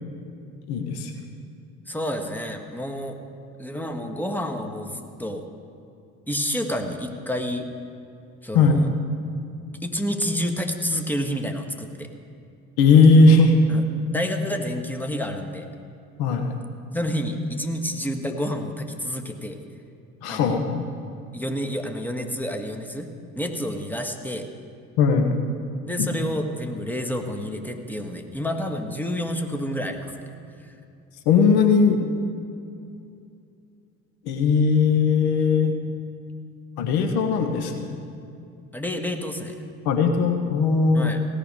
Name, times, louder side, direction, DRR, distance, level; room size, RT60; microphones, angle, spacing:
voice 1, 0.7-1.1 8.5-8.8 12.8-13.5 16.2-16.6 20.2-20.9 25.0-25.4 26.0-26.1 31.3-32.0 34.2-35.7 36.8-38.0 39.8-41.1, left 4 dB, 65° left, 6 dB, 1.3 m, -18 dB
voice 2, 1.9-3.2 3.6-5.5 6.3-7.7 8.4-8.9 9.8-12.1 13.7-15.7 16.9-19.6 20.3-20.6 21.3-23.1 23.4-24.5 25.9-30.1 30.6-30.7 38.7-39.6 40.9-41.2, equal, 5° left, 4 dB, 1.7 m, -29 dB
16.5 x 6.9 x 9.0 m, 2.6 s
hypercardioid pair, 55°, 41 cm